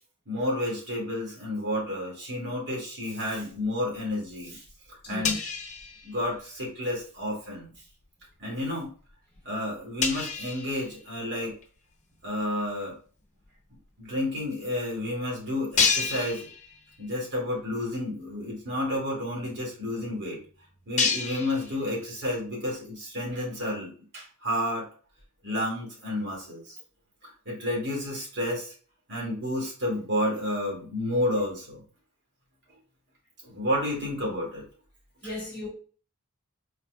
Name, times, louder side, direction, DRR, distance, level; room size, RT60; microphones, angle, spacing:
voice 1, 0.3-4.6 5.1-5.4 6.0-7.7 8.4-8.9 9.4-11.5 12.2-13.0 14.0-16.5 17.0-20.4 20.9-24.9 25.4-26.8 27.5-28.7 29.1-31.8 33.4-34.6, left 1 dB, 55° right, 2.3 m, -31 dB
sound 1, 3.4-4.1 4.4-6.7 7.0-7.2 7.8-8.0 8.6-8.7 9.1-9.2 9.4-9.5 10.0-11.6 12.2-12.3 13.4-13.5 13.7-13.8 14.5-14.6 15.0-15.1 15.7-17.2 17.5-17.7 18.2-18.3 18.5-22.3, left 5 dB, 35° left, 0.8 m, -31 dB
voice 2, 5.0-5.4 35.2-35.7, left 1 dB, 15° left, 1.8 m, -37 dB
4.6 x 4.3 x 2.4 m
head